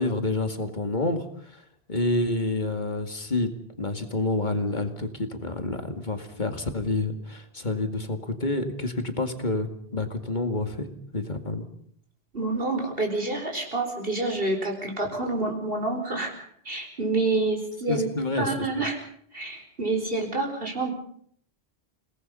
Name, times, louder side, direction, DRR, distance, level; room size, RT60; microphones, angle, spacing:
voice 1, 0.0-1.6 1.9-3.5 3.8-10.9 11.1-11.7 17.9-18.9, left 2 dB, 45° left, 7 dB, 2.4 m, -28 dB
voice 2, 12.3-16.3 16.7-18.1 18.4-19.0 19.3-20.9, right 2 dB, 60° right, 3 dB, 5.1 m, -28 dB
29.5 x 18.5 x 5.6 m, 0.64 s
omnidirectional pair, 1.1 m